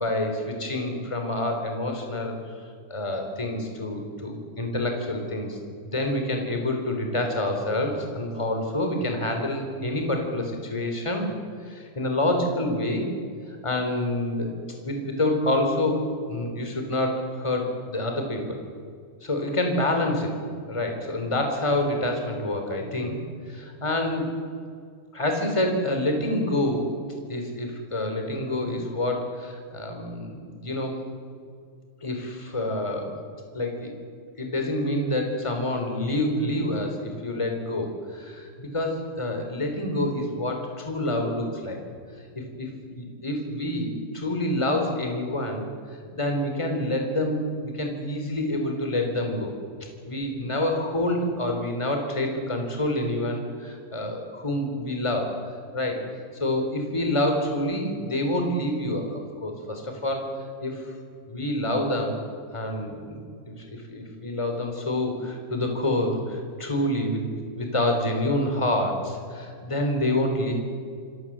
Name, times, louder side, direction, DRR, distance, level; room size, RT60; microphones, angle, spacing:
voice 1, 0.0-2.4 2.9-11.3 11.6-13.1 13.6-14.5 14.8-18.6 19.2-20.3 20.7-23.2 23.5-24.3 25.1-26.9 27.3-31.0 32.0-33.2 33.5-33.9 34.4-41.8 42.6-45.7 46.1-49.5 50.0-55.4 55.7-56.0 56.4-60.3 60.6-60.9 61.3-62.2 62.5-63.2 63.5-70.5, left 1 dB, 5° left, 3 dB, 3.2 m, -27 dB
27.5 x 17.0 x 7.6 m, 2.2 s
omnidirectional pair, 4.9 m